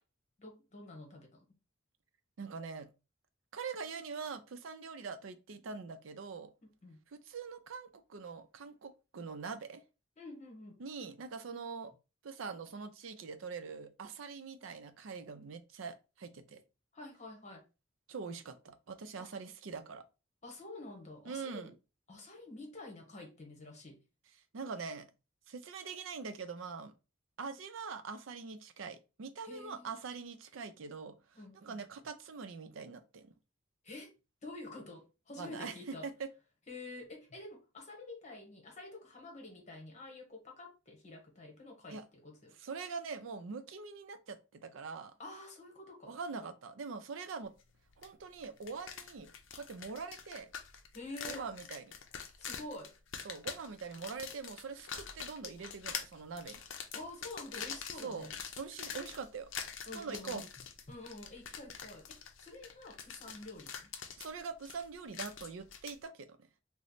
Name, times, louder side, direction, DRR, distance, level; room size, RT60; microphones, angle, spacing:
voice 1, 0.4-1.5 6.6-7.0 10.2-10.8 16.9-17.7 19.2-19.3 20.4-21.7 22.1-24.0 29.4-29.9 31.3-31.8 33.8-34.1 34.4-36.1 36.7-42.5 45.2-46.5 50.9-51.5 52.4-52.9 56.9-58.4 59.8-60.5 60.9-63.9, left 2 dB, 35° left, 1.0 m, -48 dB
voice 2, 2.4-2.9 3.5-6.5 7.3-9.8 10.8-11.9 12.2-16.6 18.1-20.0 21.3-21.7 24.5-25.1 25.5-26.9 27.4-31.2 31.5-33.3 35.4-35.7 36.0-36.3 41.9-42.0 42.6-45.1 46.1-47.5 48.0-49.3 49.6-50.5 51.3-51.8 53.2-56.6 58.0-58.3 58.6-59.5 59.9-60.5 64.2-66.4, right 5 dB, 75° right, 0.5 m, -43 dB
sound 1, 48.0-48.1 48.4-66.0, left 7 dB, 65° left, 0.5 m, -45 dB
3.1 x 2.0 x 3.9 m
head